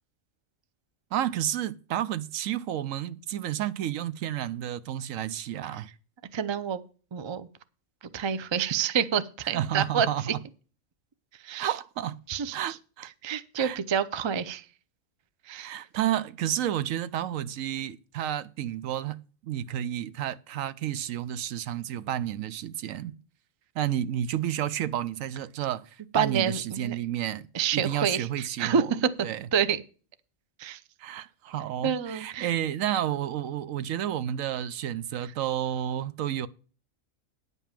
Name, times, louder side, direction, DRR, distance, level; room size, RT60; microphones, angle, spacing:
voice 1, 1.1-5.9 9.5-10.4 11.6-12.2 12.5-13.1 13.6-13.8 15.5-19.2 19.4-23.1 23.7-27.5 27.7-28.9 29.2-29.5 31.0-36.5, right 11 dB, 75° right, 1.0 m, -31 dB
voice 2, 6.3-6.8 7.1-7.5 8.1-10.1 11.4-11.7 12.3-12.8 13.2-14.7 15.5-15.8 26.1-27.0 27.5-29.1 29.5-29.8 30.6-30.8 31.8-32.5, right 7 dB, 40° right, 0.4 m, -28 dB
10.0 x 5.4 x 7.3 m
omnidirectional pair, 1.4 m